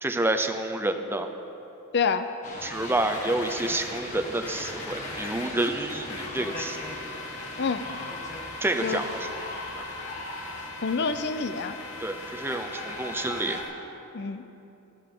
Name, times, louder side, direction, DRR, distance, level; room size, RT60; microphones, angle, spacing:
voice 1, 0.0-1.3 2.6-6.8 8.6-9.3 12.0-13.6, right 2 dB, 10° right, 6 dB, 0.6 m, -28 dB
voice 2, 1.9-2.3 7.6-7.9 8.8-9.0 10.8-11.8 14.1-14.4, left 5 dB, 50° left, 10 dB, 0.6 m, -27 dB
sound 1, 2.4-13.6, left 1 dB, 35° left, 1.9 m, -39 dB
sound 2, 2.7-13.7, left 3 dB, 80° left, 1.3 m, -42 dB
19.0 x 13.5 x 3.8 m, 2.9 s
head